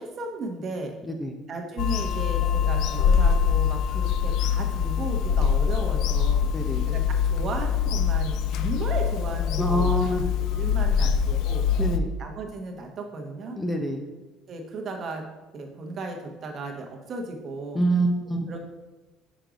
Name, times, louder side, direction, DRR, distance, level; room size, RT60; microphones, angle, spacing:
voice 1, 0.0-0.9 1.5-6.5 6.8-10.1 10.5-11.6 12.2-13.6 14.5-15.2 15.5-17.8 18.5-18.6, right 2 dB, 40° right, 3 dB, 1.0 m, -35 dB
Bird vocalization bird call bird song / Telephone, 1.8-12.0, left 7 dB, 65° left, 0.4 m, -24 dB
voice 2, 6.5-6.9 9.6-10.2 11.8-12.1 13.6-14.0 17.7-18.5, right 1 dB, 10° left, 3 dB, 0.6 m, -25 dB
5.1 x 4.5 x 5.0 m, 1.1 s
cardioid pair, 125°, 0 cm